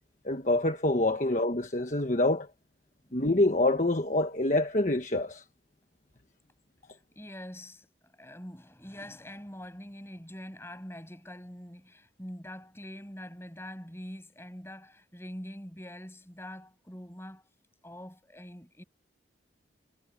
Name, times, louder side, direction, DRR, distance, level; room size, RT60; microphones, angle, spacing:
voice 1, 0.2-2.5 3.1-5.4, left 2 dB, 40° left, 1.3 m, -26 dB
voice 2, 7.1-17.4 17.8-18.8, equal, 15° left, 7.8 m, -44 dB
head